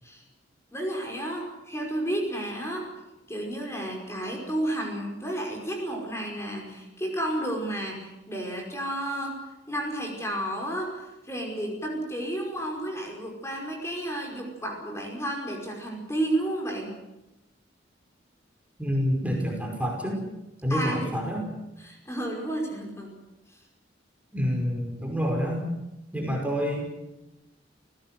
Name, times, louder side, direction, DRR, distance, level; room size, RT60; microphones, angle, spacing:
voice 1, 0.7-2.9 3.3-9.4 9.7-16.9 20.7-21.1 21.8-23.1, right 1 dB, 15° left, 1 dB, 5.4 m, -32 dB
voice 2, 18.8-20.2 20.6-21.5 24.3-25.6 26.1-27.0, equal, 10° right, 1 dB, 5.3 m, -28 dB
29.0 x 16.5 x 7.7 m, 0.95 s
head